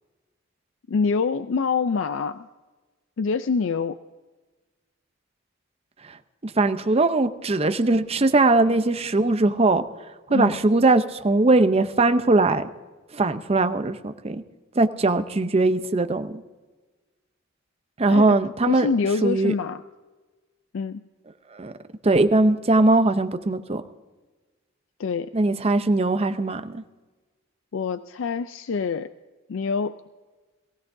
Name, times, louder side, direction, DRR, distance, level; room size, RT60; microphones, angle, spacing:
voice 1, 0.9-2.5 3.2-4.0 10.3-10.6 18.1-18.3 18.7-19.8 20.7-21.0 25.0-25.3 27.7-29.1 29.5-29.9, left 5 dB, 70° left, 11 dB, 0.4 m, -25 dB
voice 2, 6.4-9.8 10.3-12.7 13.1-14.4 14.8-16.4 18.0-18.9 19.2-19.5 21.5-21.7 22.0-23.8 25.3-26.8, right 2 dB, 30° right, 9 dB, 0.6 m, -20 dB
22.0 x 15.5 x 2.7 m, 1.3 s
head